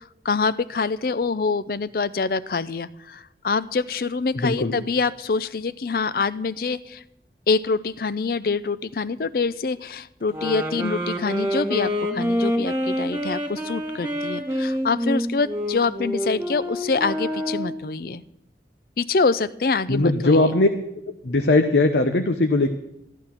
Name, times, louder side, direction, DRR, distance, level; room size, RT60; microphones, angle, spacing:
voice 1, 0.2-7.0 7.5-18.2 19.0-20.6, left 4 dB, 55° left, 16 dB, 0.5 m, -25 dB
voice 2, 4.3-4.8 19.9-20.7 21.2-22.7, left 2 dB, 75° left, 6 dB, 0.9 m, -19 dB
sound 1, 10.3-17.9, equal, 15° right, 1.9 m, -27 dB
13.5 x 12.0 x 5.9 m, 0.83 s
head